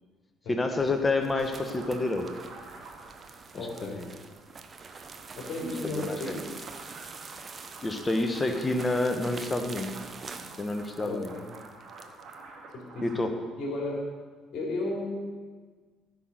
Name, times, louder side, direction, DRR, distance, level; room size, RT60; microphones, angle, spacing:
voice 1, 0.5-2.3 3.5-4.1 5.9-6.4 7.8-10.0 10.6-11.3 13.0-13.3, left 2 dB, 20° left, 6 dB, 1.3 m, -29 dB
sound 1, 0.7-12.4, right 4 dB, 35° right, 0.9 m, -46 dB
sound 2, 1.3-13.2, right 3 dB, 50° right, 2.4 m, -49 dB
voice 2, 3.5-4.0 5.4-6.5 11.0-11.4 12.7-13.2 13.6-14.0 14.5-15.1, left 2 dB, 50° left, -1 dB, 3.4 m, -34 dB
15.0 x 6.1 x 6.6 m, 1.4 s
figure-of-eight pair, 50°, 0 cm